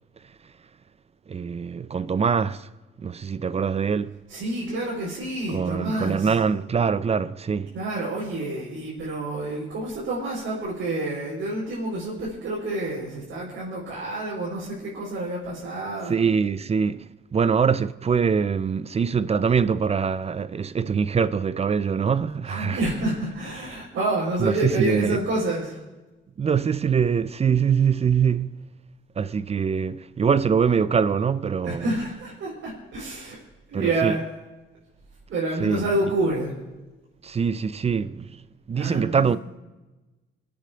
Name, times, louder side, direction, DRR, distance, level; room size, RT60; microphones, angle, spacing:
voice 1, 1.3-2.7 3.0-4.2 5.5-7.7 16.1-22.8 24.4-25.2 26.4-28.7 29.2-31.9 33.7-34.2 35.6-35.8 37.2-39.4, right 6 dB, 30° right, 0.5 m, -23 dB
voice 2, 4.3-6.3 7.7-16.1 22.5-25.8 31.6-33.4 33.7-34.2 35.3-36.5 38.7-39.3, right 2 dB, 70° right, 4.8 m, -28 dB
24.5 x 8.7 x 5.1 m
cardioid pair, 90°, 20 cm